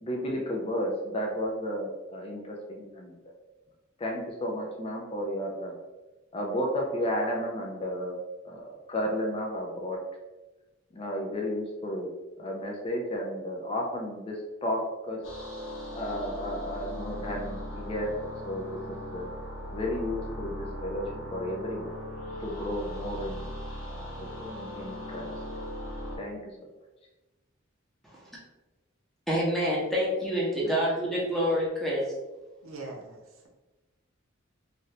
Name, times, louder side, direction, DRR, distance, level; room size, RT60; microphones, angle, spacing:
voice 1, 0.0-3.1 4.0-5.7 6.3-10.0 10.9-12.1 12.4-15.2 15.9-19.3 19.7-21.9 22.4-23.5 23.9-25.4 26.2-26.5, equal, 30° left, -1 dB, 0.4 m, -33 dB
sound 1, 15.2-26.2, equal, 85° left, 0.9 m, -39 dB
voice 2, 29.3-32.0, equal, ahead, -6 dB, 0.8 m, -27 dB
voice 3, 30.7-31.2 32.6-33.5, right 3 dB, 85° right, 0 dB, 0.6 m, -43 dB
2.7 x 2.5 x 3.1 m, 1.1 s
head